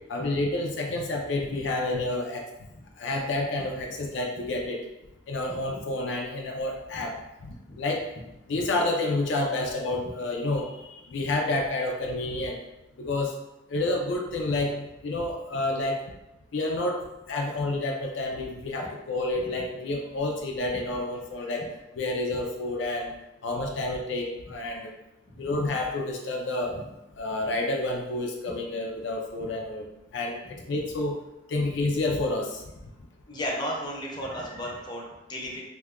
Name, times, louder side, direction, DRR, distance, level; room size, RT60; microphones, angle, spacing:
voice 1, 0.1-2.5 3.0-4.8 5.3-7.2 7.4-8.0 8.5-10.8 11.1-12.6 13.0-13.3 13.7-16.0 16.5-21.7 22.0-23.1 23.4-24.8 25.4-26.7 27.2-29.8 30.1-31.2 31.5-32.6, left 2 dB, 70° left, 1 dB, 0.4 m, -29 dB
voice 2, 33.3-35.6, equal, 25° left, -2 dB, 0.6 m, -33 dB
2.7 x 2.3 x 3.5 m, 0.93 s
head